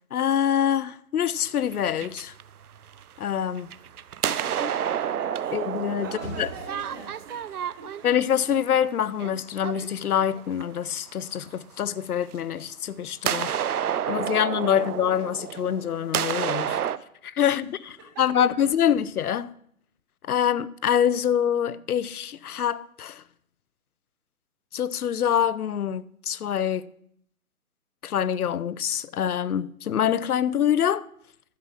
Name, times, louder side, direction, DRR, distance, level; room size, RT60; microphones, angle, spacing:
voice 1, 0.1-2.3 3.2-3.7 5.5-6.5 8.0-13.5 14.1-16.8 17.2-17.7 18.2-19.5 20.2-23.2 24.7-26.9 28.0-31.0, left 9 dB, 80° left, 0.6 m, -25 dB
sound 1, 1.4-3.2 3.6-10.8 12.3-12.4 13.3-17.0, right 9 dB, 90° right, 0.6 m, -30 dB
voice 2, 4.1-8.1 13.3-13.6 18.1-18.2, right 3 dB, 15° right, 1.3 m, -43 dB
sound 2, 5.5-7.6, right 1 dB, 10° left, 0.9 m, -44 dB
11.0 x 5.9 x 6.0 m
hypercardioid pair, 165°, 44 cm